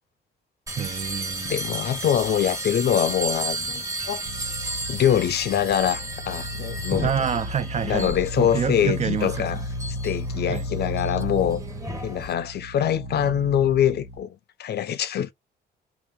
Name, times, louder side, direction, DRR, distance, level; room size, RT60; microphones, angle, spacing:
sound 1, 0.7-12.3, right 2 dB, 15° right, 0.9 m, -34 dB
voice 1, 0.8-1.6 7.0-9.6 10.5-10.6, right 8 dB, 35° right, 0.4 m, -27 dB
voice 2, 1.4-4.2 4.9-7.3 7.8-9.6 10.0-11.6 12.0-15.3, left 10 dB, 55° left, 0.5 m, -24 dB
sound 2, 4.3-14.2, equal, 85° right, 0.7 m, -34 dB
3.0 x 2.8 x 3.5 m
cardioid pair, 90°, 20 cm